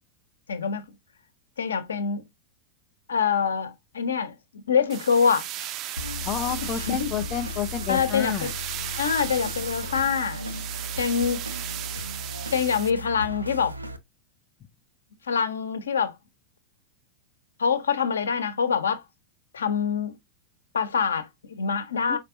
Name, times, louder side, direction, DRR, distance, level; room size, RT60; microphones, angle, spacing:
voice 1, 0.5-0.8 1.6-2.2 3.1-5.7 6.9-7.1 7.9-8.3 9.0-10.4 11.0-11.4 12.5-13.9 15.3-16.1 17.6-19.0 19.5-20.1 20.7-22.2, left 6 dB, 70° left, 0.9 m, -25 dB
sound 1, 4.9-12.9, right 12 dB, 35° right, 0.5 m, -36 dB
sound 2, 6.0-14.0, left 1 dB, 85° right, 0.7 m, -36 dB
voice 2, 6.2-8.5 22.1-22.2, left 8 dB, 30° left, 0.5 m, -29 dB
5.0 x 4.1 x 2.5 m
figure-of-eight pair, 90°, 0 cm